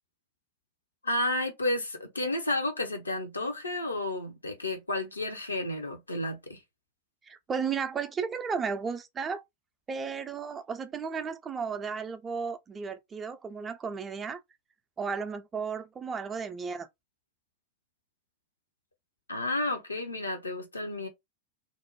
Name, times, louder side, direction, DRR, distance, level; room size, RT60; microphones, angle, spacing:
voice 1, 1.0-6.6 19.3-21.1, left 1 dB, 80° left, 0.6 m, -31 dB
voice 2, 7.3-9.4 9.9-14.4 15.0-16.9, right 5 dB, 20° right, 0.4 m, -34 dB
2.5 x 2.0 x 2.9 m
figure-of-eight pair, 90°, 0 cm